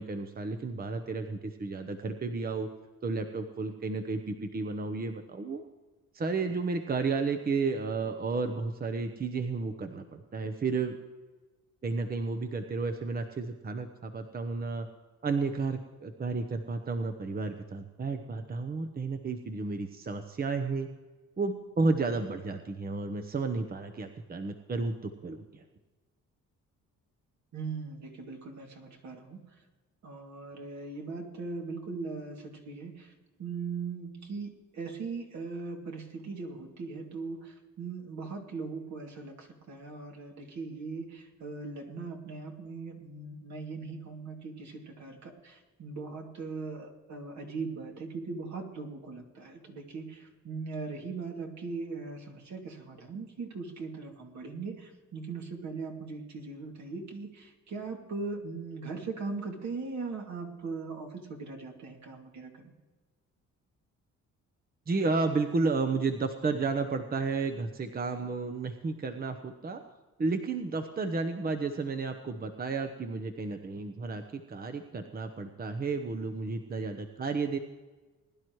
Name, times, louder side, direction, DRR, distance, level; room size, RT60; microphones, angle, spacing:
voice 1, 0.0-2.7 3.0-5.6 6.1-10.9 11.8-14.9 15.2-20.9 21.4-25.6 64.9-69.8 70.2-77.6, right 4 dB, 30° right, 6 dB, 0.9 m, -32 dB
voice 2, 27.5-29.5 30.0-33.1 33.4-62.7, right 4 dB, 65° right, 1 dB, 2.6 m, -39 dB
20.5 x 11.0 x 3.2 m, 1.3 s
cardioid pair, 90°, 30 cm